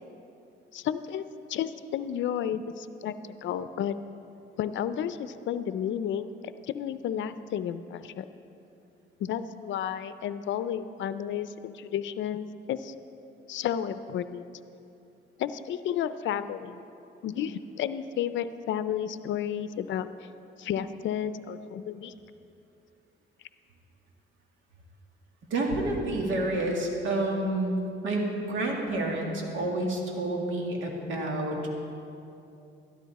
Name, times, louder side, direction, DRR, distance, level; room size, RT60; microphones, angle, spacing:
voice 1, 0.7-1.2 1.5-3.1 3.4-3.9 4.6-6.3 6.6-8.3 9.2-12.9 13.5-14.5 15.4-16.8 17.2-20.1 20.6-22.1, left 9 dB, 70° left, 13 dB, 0.5 m, -32 dB
voice 2, 25.5-27.7 28.0-31.6, right 2 dB, 80° right, 0 dB, 2.1 m, -29 dB
13.0 x 12.5 x 4.1 m, 2.8 s
cardioid pair, 90°, 20 cm